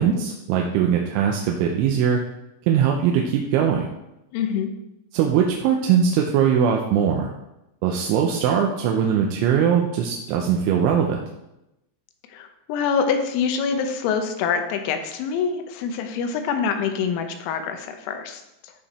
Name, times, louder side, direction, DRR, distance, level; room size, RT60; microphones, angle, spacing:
voice 1, 0.0-2.2 2.7-3.9 5.1-7.3 7.8-11.2, right 8 dB, 80° right, 1 dB, 3.0 m, -21 dB
voice 2, 4.3-4.7 12.3-18.7, left 6 dB, 85° left, 6 dB, 3.6 m, -25 dB
14.0 x 4.8 x 4.2 m, 0.90 s
omnidirectional pair, 5.9 m